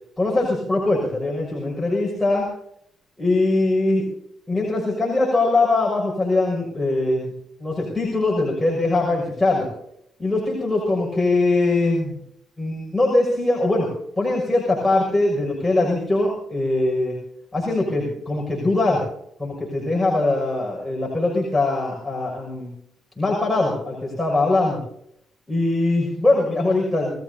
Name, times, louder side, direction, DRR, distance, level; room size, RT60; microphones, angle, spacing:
voice 1, 0.2-2.5 3.2-4.1 4.5-7.3 7.6-9.7 10.2-12.2 12.6-13.9 14.2-17.2 17.5-19.0 19.4-22.7 23.2-24.8 25.5-27.1, left 2 dB, 10° left, -3 dB, 6.1 m, -21 dB
28.0 x 18.5 x 2.8 m, 0.71 s
cardioid pair, 90°, 0 cm